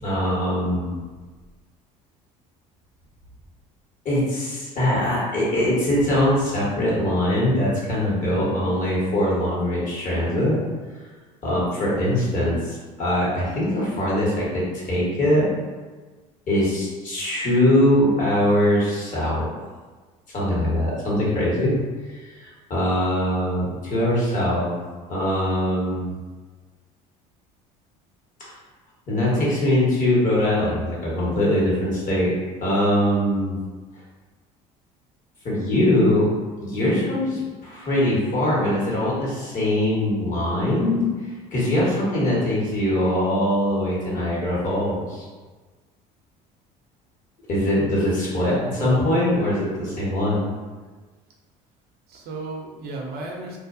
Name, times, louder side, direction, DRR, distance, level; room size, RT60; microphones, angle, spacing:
voice 1, 0.0-0.9 4.0-10.6 11.4-15.5 16.5-19.5 20.3-21.8 22.1-24.7 25.1-26.1 29.1-32.3 32.6-33.5 35.4-36.3 36.6-41.1 41.5-45.3 47.5-50.5, left 1 dB, 50° left, -6 dB, 1.3 m, -22 dB
voice 2, 8.3-8.6 48.4-49.1 52.1-53.6, right 2 dB, 60° right, -1 dB, 0.6 m, -34 dB
2.5 x 2.2 x 2.6 m, 1.3 s
supercardioid pair, 80°, 18 cm